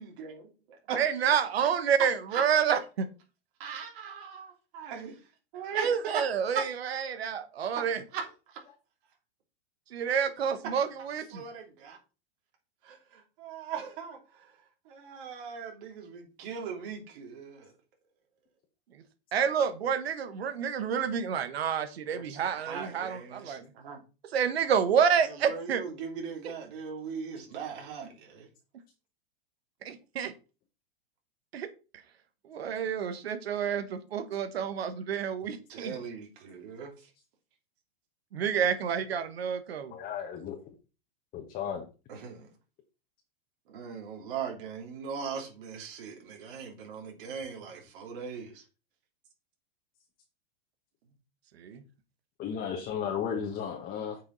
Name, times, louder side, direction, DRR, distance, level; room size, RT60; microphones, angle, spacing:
voice 1, 0.0-1.0 2.3-2.4 3.6-5.2 5.5-6.3 6.5-6.6 7.8-7.9 8.1-8.2 8.5-8.6 11.3-12.0 12.8-14.5 14.8-17.7 22.1-24.0 25.2-28.5 35.7-37.1 42.1-42.5 43.7-48.6, right 6 dB, 60° right, 3.0 m, -39 dB
voice 2, 1.0-3.1 5.7-8.0 9.9-11.4 19.3-23.6 24.3-25.8 29.8-30.3 31.5-31.7 32.5-35.6 35.8-35.9 38.3-39.9 51.6-51.8, right 7 dB, 90° right, 1.3 m, -29 dB
voice 3, 39.9-40.6 41.3-41.8 52.4-54.2, left 7 dB, 30° left, 1.4 m, -34 dB
8.4 x 5.6 x 4.0 m
hypercardioid pair, 135°, 30 cm